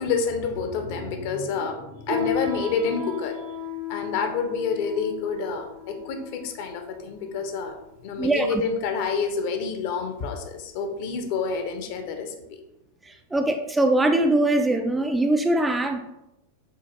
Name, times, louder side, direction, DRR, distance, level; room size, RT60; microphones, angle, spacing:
voice 1, 0.0-3.5 3.9-7.7 8.0-12.6, left 5 dB, 50° left, 5 dB, 0.7 m, -28 dB
Piano, 2.0-12.0, left 6 dB, 55° right, 0.9 m, -35 dB
voice 2, 13.1-16.0, right 1 dB, 10° right, 5 dB, 0.3 m, -22 dB
7.1 x 2.5 x 2.9 m, 0.88 s
figure-of-eight pair, 90°, 0 cm